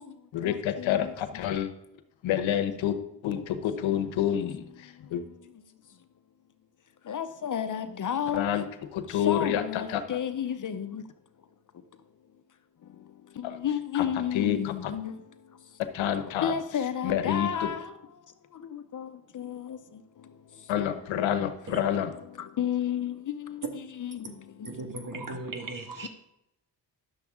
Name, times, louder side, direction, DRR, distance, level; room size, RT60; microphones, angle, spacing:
voice 1, 0.3-1.7 2.2-3.0 3.2-4.6 5.1-5.2 8.3-8.6 8.9-9.6 9.9-10.0 13.9-14.0 14.3-14.9 15.8-16.5 17.0-17.5 20.7-22.1, left 10 dB, 85° left, 0.9 m, -28 dB
voice 2, 7.1-8.4 9.3-11.0 13.6-15.1 16.4-17.8 18.9-19.0 19.5-19.6 22.6-23.1 24.0-24.2, left 9 dB, 45° left, 0.7 m, -30 dB
voice 3, 24.6-26.1, right 2 dB, 45° right, 1.6 m, -37 dB
10.5 x 6.9 x 3.6 m
cardioid pair, 85°, 45 cm